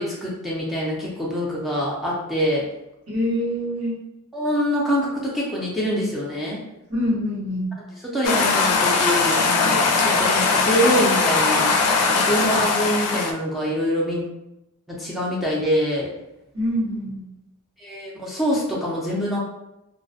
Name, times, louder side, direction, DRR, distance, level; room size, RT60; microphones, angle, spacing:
voice 1, 0.0-2.7 4.3-6.6 8.0-11.7 12.1-14.2 14.9-16.1 17.8-19.4, equal, ahead, -6 dB, 0.5 m, -25 dB
voice 2, 3.1-4.0 6.9-7.7 16.5-17.2, left 1 dB, 70° right, -10 dB, 1.2 m, -25 dB
sound 1, 8.2-13.3, left 4 dB, 90° left, 0.4 m, -20 dB
2.4 x 2.1 x 2.5 m, 0.91 s
head